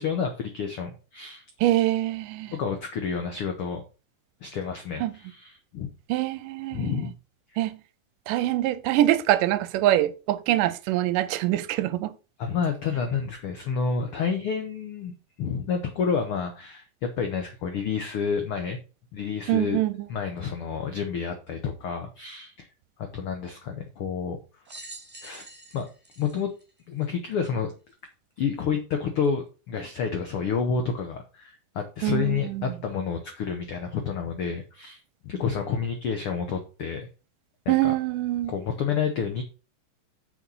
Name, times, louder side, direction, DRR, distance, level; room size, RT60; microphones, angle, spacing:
voice 1, 0.0-1.4 2.5-3.8 4.4-5.9 6.7-7.1 12.4-18.8 19.1-19.8 20.1-22.7 23.0-24.4 25.2-25.5 25.7-25.9 26.2-26.5 26.9-27.7 28.4-37.1 37.6-37.9 38.5-39.4, left 6 dB, 85° left, 1.2 m, -29 dB
voice 2, 1.6-2.5 5.0-5.1 6.1-7.0 7.6-7.8 8.3-12.1 19.5-19.9 32.0-32.8 37.7-38.5, right 14 dB, 80° right, 2.1 m, -24 dB
sound 1, 24.6-27.3 28.0-28.1 29.2-29.3, right 2 dB, 5° right, 1.3 m, -46 dB
6.5 x 6.2 x 5.5 m
omnidirectional pair, 3.9 m